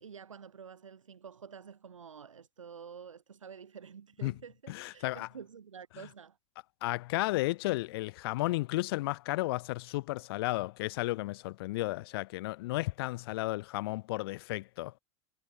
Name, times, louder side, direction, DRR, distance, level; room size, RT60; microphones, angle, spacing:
voice 1, 0.0-6.4, right 7 dB, 75° right, 2.2 m, -49 dB
voice 2, 4.7-5.3 6.8-14.9, left 19 dB, 50° left, 0.4 m, -33 dB
figure-of-eight pair, 85°, 17 cm